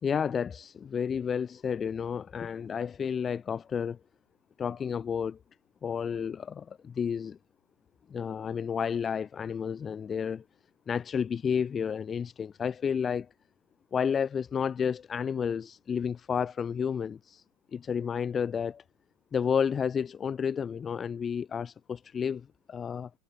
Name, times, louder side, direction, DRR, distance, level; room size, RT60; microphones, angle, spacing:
voice 1, 0.0-4.0 4.6-5.4 5.8-7.4 8.1-10.4 10.9-13.3 13.9-17.4 17.7-18.8 19.3-23.1, left 7 dB, 20° left, 0.4 m, -31 dB
figure-of-eight pair, 90°, 0 cm